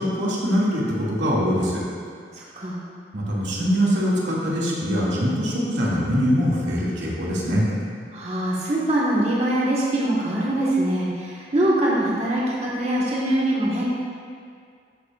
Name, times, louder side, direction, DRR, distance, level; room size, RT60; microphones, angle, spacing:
voice 1, 0.0-1.8 2.5-2.6 3.1-7.7, equal, 90° right, -6 dB, 2.4 m, -23 dB
voice 2, 2.3-2.8 8.1-13.8, right 1 dB, 35° right, -7 dB, 1.6 m, -23 dB
13.5 x 9.0 x 2.5 m, 2.2 s
head